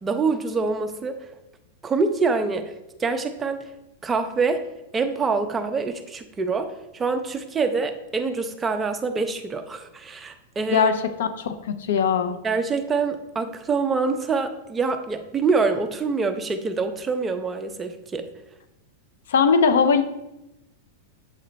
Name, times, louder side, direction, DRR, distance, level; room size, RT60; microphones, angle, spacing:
voice 1, 0.0-1.2 1.8-2.7 3.0-3.6 4.0-4.6 4.9-10.9 12.4-18.3, right 4 dB, 10° right, 7 dB, 0.4 m, -25 dB
voice 2, 10.7-12.4 19.3-20.0, left 6 dB, 85° left, 10 dB, 0.5 m, -20 dB
7.5 x 3.2 x 3.9 m, 0.93 s
supercardioid pair, 175°, 0 cm